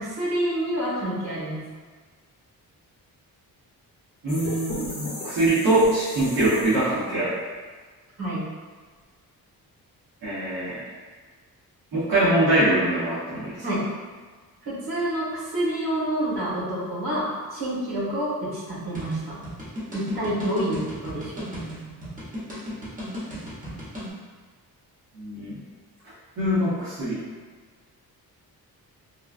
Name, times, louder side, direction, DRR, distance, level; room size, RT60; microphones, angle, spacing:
voice 1, 0.0-1.6 8.2-8.4 13.6-13.8 14.6-19.4 19.9-21.5, right 1 dB, 85° right, -8 dB, 1.4 m, -28 dB
voice 2, 4.2-7.3 10.2-10.8 11.9-13.5 25.1-25.6 26.4-27.2, right 1 dB, 65° right, -13 dB, 1.1 m, -23 dB
sound 1, 4.3-7.1, left 1 dB, 25° left, 0.8 m, -36 dB
sound 2, 18.9-24.1, equal, 20° right, 0.9 m, -36 dB
3.0 x 2.3 x 2.4 m, 1.4 s
wide cardioid pair, 130°, 37 cm